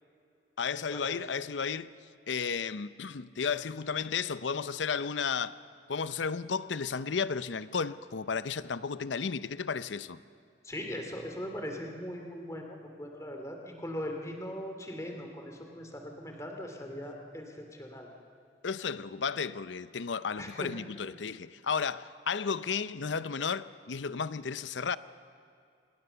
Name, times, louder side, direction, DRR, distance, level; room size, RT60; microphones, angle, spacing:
voice 1, 0.6-1.9 2.3-5.6 5.9-10.2 18.6-25.0, left 6 dB, 85° left, 0.7 m, -33 dB
voice 2, 10.6-18.1 20.4-20.7, equal, 15° left, 2.6 m, -40 dB
26.0 x 20.0 x 6.9 m
head